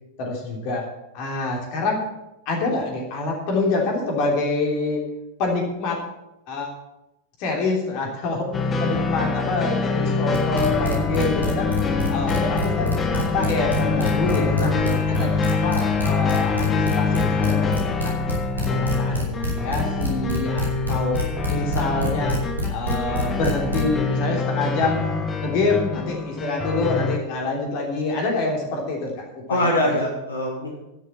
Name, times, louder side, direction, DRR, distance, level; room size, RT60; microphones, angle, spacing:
voice 1, 0.2-0.9 1.1-2.0 2.4-5.0 5.4-6.0 6.5-6.7 7.4-11.7 12.1-14.7 15.1-18.2 18.7-22.4 22.7-25.1 25.4-30.0, left 3 dB, 45° left, 0 dB, 3.2 m, -26 dB
sound 1, 8.5-27.2, left 4 dB, 20° left, 1.3 m, -25 dB
sound 2, 10.3-23.9, right 1 dB, 85° right, 3.2 m, -26 dB
voice 2, 14.5-15.0 29.5-30.8, left 1 dB, 75° left, -1 dB, 1.8 m, -24 dB
11.0 x 6.8 x 7.5 m, 0.91 s
figure-of-eight pair, 90°, 0 cm